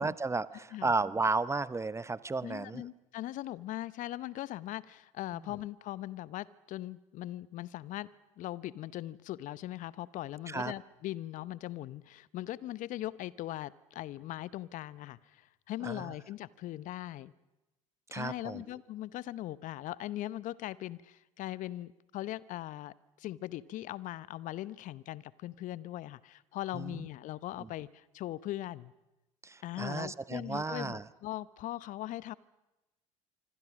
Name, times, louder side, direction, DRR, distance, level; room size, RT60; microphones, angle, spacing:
voice 1, 0.0-2.9 10.5-10.7 15.8-16.1 18.1-18.6 26.7-27.0 29.4-31.0, right 3 dB, 15° right, 17 dB, 0.8 m, -33 dB
voice 2, 2.4-8.1 8.4-17.3 18.1-28.9 29.6-32.3, left 14 dB, 50° left, 19 dB, 0.8 m, -40 dB
26.5 x 25.5 x 6.3 m, 0.98 s
hypercardioid pair, 65°, 17 cm